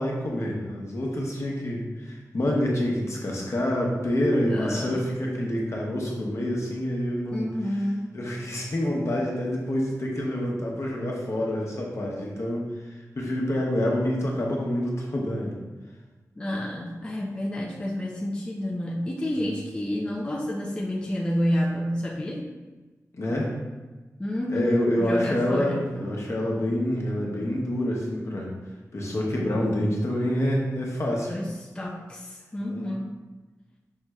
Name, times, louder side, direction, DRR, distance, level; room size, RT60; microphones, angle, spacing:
voice 1, 0.0-7.5 8.1-15.6 19.4-19.5 23.1-23.5 24.5-28.5 28.9-31.3 32.7-32.9, left 1 dB, 55° left, -2 dB, 0.8 m, -27 dB
voice 2, 4.5-5.0 7.3-8.1 16.4-22.4 24.2-25.8 31.3-33.1, equal, 15° left, -2 dB, 0.4 m, -29 dB
5.4 x 3.1 x 2.3 m, 1.2 s
wide cardioid pair, 115°, 6 cm